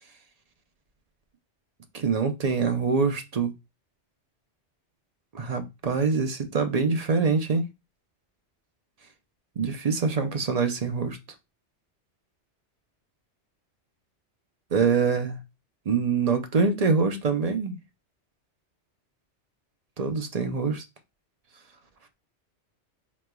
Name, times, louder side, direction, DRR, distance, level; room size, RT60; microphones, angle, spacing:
voice 1, 1.9-3.5 5.3-7.7 9.6-11.2 14.7-15.4 15.9-17.8 20.0-20.9, right 5 dB, 50° right, 0.5 m, -25 dB
5.0 x 3.0 x 2.2 m
omnidirectional pair, 1.2 m